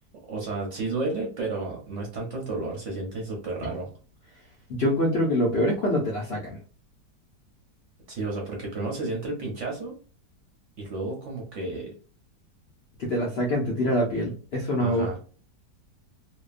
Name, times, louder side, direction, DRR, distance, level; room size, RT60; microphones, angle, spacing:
voice 1, 0.3-3.9 8.1-9.9 10.8-11.9 14.8-15.2, right 2 dB, 60° right, -1 dB, 0.8 m, -32 dB
voice 2, 4.7-6.6 13.0-15.2, equal, 70° left, -2 dB, 0.5 m, -25 dB
2.7 x 2.2 x 2.4 m, 0.39 s
omnidirectional pair, 1.8 m